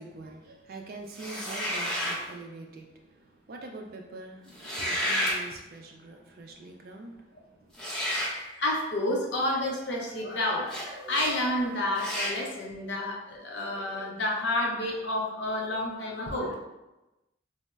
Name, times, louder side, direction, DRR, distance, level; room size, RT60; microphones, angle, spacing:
voice 1, 0.0-7.7, right 2 dB, 50° right, 2 dB, 0.3 m, -44 dB
sound 1, 1.1-2.2 4.5-5.4 7.7-8.4 10.7-10.8 11.1-11.3 12.0-12.4, equal, 5° left, 0.5 m, -30 dB
voice 2, 8.1-16.5, left 1 dB, 70° left, -1 dB, 0.6 m, -30 dB
3.9 x 2.0 x 2.2 m, 0.99 s
head